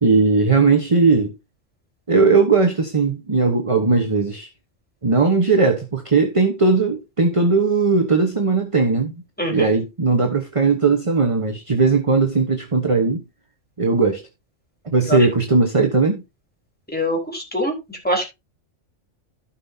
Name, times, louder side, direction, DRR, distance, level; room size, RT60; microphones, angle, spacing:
voice 1, 0.0-1.3 2.1-4.5 5.0-9.1 9.5-13.2 13.8-14.2 14.9-16.2, right 4 dB, 25° right, 1.1 m, -18 dB
voice 2, 9.4-9.7 15.0-15.3 16.9-18.2, equal, 5° left, 4.1 m, -24 dB
15.5 x 5.6 x 2.7 m
omnidirectional pair, 1.3 m